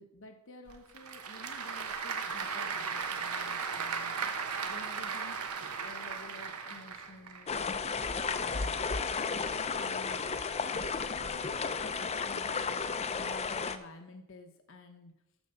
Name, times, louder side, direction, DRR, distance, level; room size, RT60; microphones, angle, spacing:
voice 1, 0.0-4.2 4.7-5.4 5.8-7.5 7.8-8.9 9.8-10.3 10.7-12.8 13.2-15.1, left 2 dB, 60° left, 4 dB, 0.9 m, -51 dB
Applause / Crowd, 0.7-7.4, right 5 dB, 80° right, 1.1 m, -36 dB
sound 1, 7.5-13.8, left 5 dB, 30° left, 0.5 m, -33 dB
12.5 x 4.7 x 6.7 m, 0.86 s
head